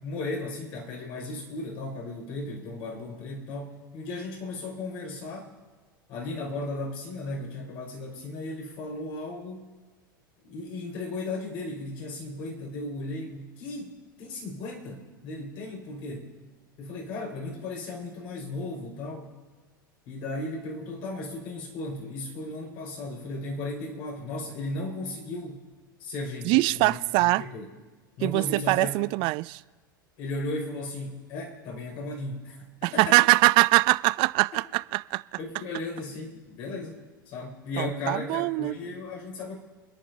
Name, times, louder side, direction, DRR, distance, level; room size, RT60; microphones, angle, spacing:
voice 1, 0.0-5.5 6.1-9.7 10.4-16.3 16.8-19.3 20.1-25.6 26.0-27.6 28.2-29.0 30.2-33.2 35.4-39.6, left 2 dB, 55° left, 5.6 m, -36 dB
voice 2, 26.5-27.4 28.2-29.6 32.8-35.2 37.8-38.7, right 22 dB, 50° right, 0.3 m, -23 dB
28.0 x 10.5 x 2.8 m
hypercardioid pair, 90°, 11 cm